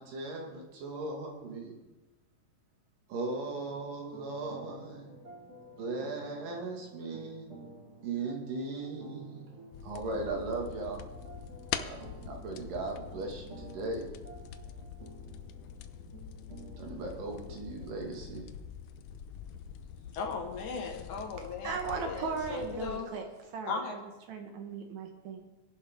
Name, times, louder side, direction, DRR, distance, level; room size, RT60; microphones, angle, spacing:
voice 1, 0.0-1.8 3.1-5.1 5.8-7.5 8.0-9.5 9.8-11.0 11.7-14.1 16.8-18.4, right 3 dB, 80° right, 1 dB, 3.6 m, -38 dB
sound 1, 3.2-18.5, right 2 dB, 40° right, 1.1 m, -52 dB
sound 2, 9.7-23.0, left 9 dB, 85° left, 1.5 m, -44 dB
voice 2, 20.1-23.1 23.7-24.0, left 4 dB, 70° left, 3 dB, 2.8 m, -37 dB
voice 3, 21.6-23.3 23.5-25.4, right 5 dB, 65° right, 4 dB, 2.4 m, -37 dB
18.0 x 11.0 x 3.6 m, 1.1 s
omnidirectional pair, 3.8 m